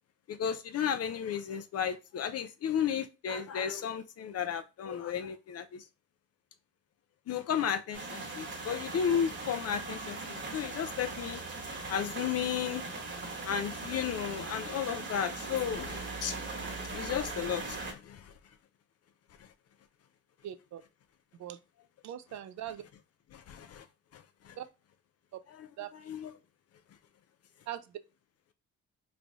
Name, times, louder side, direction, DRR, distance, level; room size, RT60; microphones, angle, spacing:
voice 1, 0.3-5.8 7.3-11.4 11.9-12.8 13.4-18.3 23.3-23.8 24.1-24.5 25.6-25.7 26.1-26.3, left 8 dB, 55° left, 0.5 m, -34 dB
sound 1, 7.9-17.9, right 3 dB, 40° right, 1.1 m, -40 dB
voice 2, 20.4-20.8 21.4-21.6 22.0-22.8 24.6-24.7 25.8-25.9 27.7-27.8, right 11 dB, 65° right, 0.5 m, -40 dB
3.2 x 2.3 x 3.9 m
cardioid pair, 90°, 30 cm